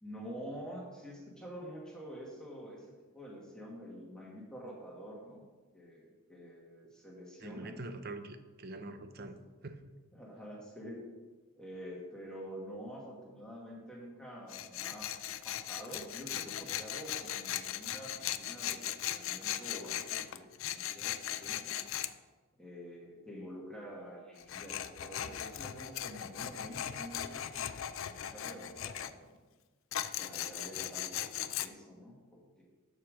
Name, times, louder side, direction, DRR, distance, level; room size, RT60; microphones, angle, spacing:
voice 1, 0.0-2.9 3.1-5.4 5.7-7.9 9.2-9.3 10.1-11.1 11.6-15.1 15.4-21.8 22.6-29.4 30.2-32.6, equal, 5° left, -3 dB, 1.6 m, -47 dB
voice 2, 7.4-9.4 9.6-9.7, right 2 dB, 50° right, 9 dB, 0.7 m, -44 dB
Tools, 14.5-22.1 24.4-29.1 29.9-31.7, left 11 dB, 65° left, 0.4 m, -38 dB
7.3 x 6.5 x 6.3 m, 1.3 s
head